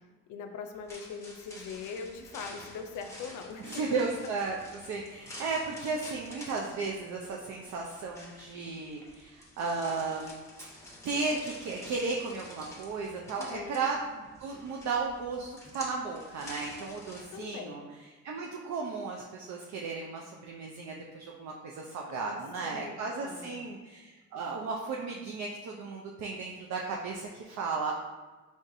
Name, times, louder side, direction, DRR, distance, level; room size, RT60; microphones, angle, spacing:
voice 1, 0.3-3.8 13.4-13.8 17.3-17.9 22.1-23.7, left 5 dB, 80° left, 6 dB, 0.5 m, -42 dB
sound 1, 0.7-17.2, left 1 dB, 10° left, 0.9 m, -49 dB
voice 2, 3.6-10.5 11.0-17.8 18.2-27.9, right 4 dB, 65° right, -1 dB, 0.5 m, -35 dB
4.0 x 3.5 x 2.6 m, 1.3 s
cardioid pair, 90°, 30 cm